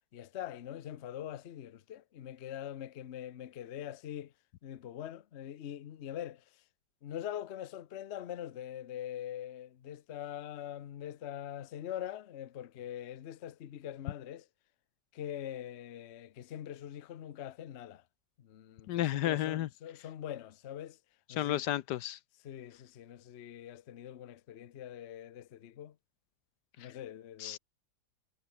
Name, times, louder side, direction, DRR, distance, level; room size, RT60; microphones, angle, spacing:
voice 1, 0.1-4.3 4.6-6.6 7.0-14.5 15.1-18.0 18.4-21.0 21.3-21.8 22.4-26.0 26.8-27.6, left 11 dB, 55° left, 0.8 m, -43 dB
voice 2, 18.9-19.7 21.4-22.2 27.4-27.6, left 13 dB, 70° left, 1.1 m, -32 dB
omnidirectional pair, 2.0 m